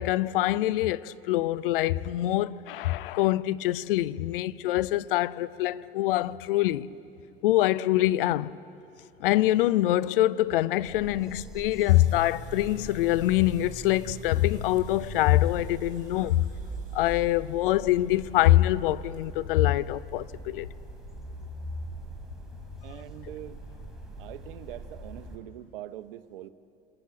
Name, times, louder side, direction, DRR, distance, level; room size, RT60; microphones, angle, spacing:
voice 1, 0.0-6.9 7.4-8.5 9.2-16.5 16.9-20.7, left 15 dB, 65° left, 0.6 m, -24 dB
sound 1, 10.8-25.4, right 1 dB, ahead, 3.8 m, -43 dB
sound 2, 11.9-21.0, right 4 dB, 25° right, 4.9 m, -45 dB
voice 2, 22.8-23.5 24.2-26.5, right 13 dB, 65° right, 0.9 m, -43 dB
26.0 x 13.5 x 7.6 m
figure-of-eight pair, 80°, 29 cm